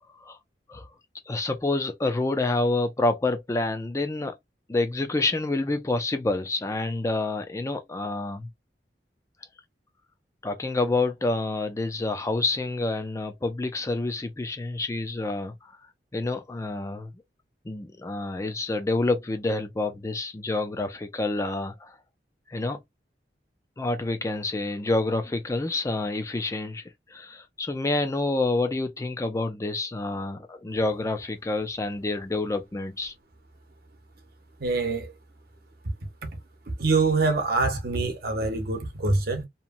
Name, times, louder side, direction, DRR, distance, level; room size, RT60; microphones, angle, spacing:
voice 1, 1.3-4.3 4.7-8.5 10.4-15.7 16.1-17.1 17.7-22.0 22.5-22.8 23.8-26.8 27.1-33.1, left 2 dB, 15° left, 0.4 m, -28 dB
voice 2, 34.6-35.1 35.8-35.9 36.8-39.4, right 3 dB, 60° right, 0.9 m, -25 dB
2.9 x 2.2 x 2.5 m
head